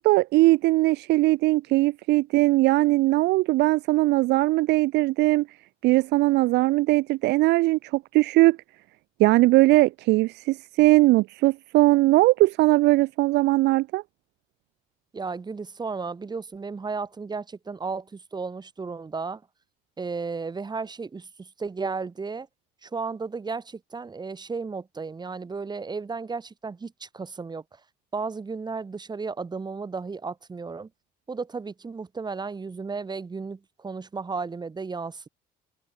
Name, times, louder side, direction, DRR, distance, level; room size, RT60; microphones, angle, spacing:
voice 1, 0.0-5.5 5.8-8.6 9.2-14.0, right 19 dB, 85° right, 1.3 m, -20 dB
voice 2, 15.1-19.4 20.0-22.5 22.8-27.8 28.1-30.9 31.3-35.3, right 4 dB, 25° right, 4.5 m, -34 dB
cardioid pair, 110°, 17 cm